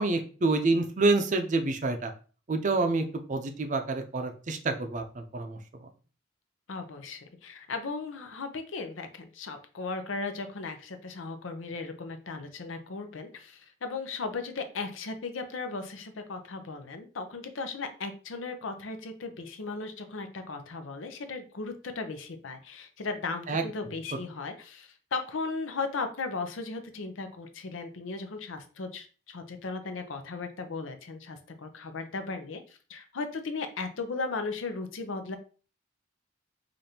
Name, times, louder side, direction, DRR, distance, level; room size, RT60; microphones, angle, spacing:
voice 1, 0.0-2.1 2.5-5.6 23.5-23.6, right 3 dB, 40° right, 6 dB, 0.5 m, -27 dB
voice 2, 6.7-35.4, left 4 dB, 85° left, 7 dB, 0.6 m, -36 dB
5.0 x 2.5 x 2.8 m, 0.38 s
head